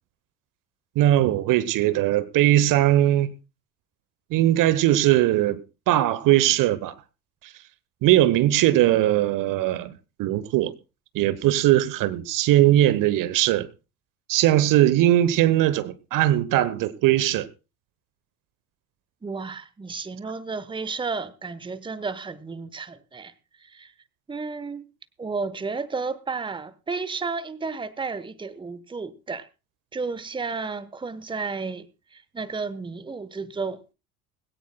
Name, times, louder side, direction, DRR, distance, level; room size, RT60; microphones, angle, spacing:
voice 1, 1.0-3.3 4.3-6.9 7.4-7.5 8.0-10.7 11.1-13.7 14.3-17.5, right 14 dB, 45° right, 1.0 m, -20 dB
voice 2, 19.2-23.3 23.6-23.9 24.3-24.9 25.2-29.5 29.9-31.9 32.1-33.8, right 4 dB, 10° right, 1.0 m, -32 dB
21.0 x 16.5 x 2.2 m
figure-of-eight pair, 60°, 44 cm